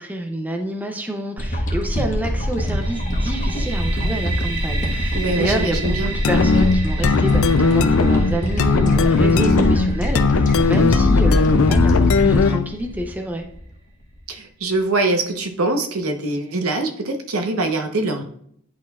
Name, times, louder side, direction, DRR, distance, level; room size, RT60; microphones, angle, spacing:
voice 1, 0.0-9.4 9.7-13.5, right 1 dB, 5° right, 3 dB, 0.6 m, -28 dB
sound 1, 1.4-13.7 14.2-14.3, equal, 35° left, 1.2 m, -24 dB
sound 2, 2.6-12.3, right 4 dB, 85° right, 2.5 m, -35 dB
voice 2, 5.1-6.1 9.4-9.6 14.3-18.2, right 2 dB, 70° right, 4 dB, 1.0 m, -23 dB
sound 3, 6.2-12.7, left 4 dB, 65° left, 0.5 m, -17 dB
10.5 x 4.2 x 2.4 m, 0.67 s
head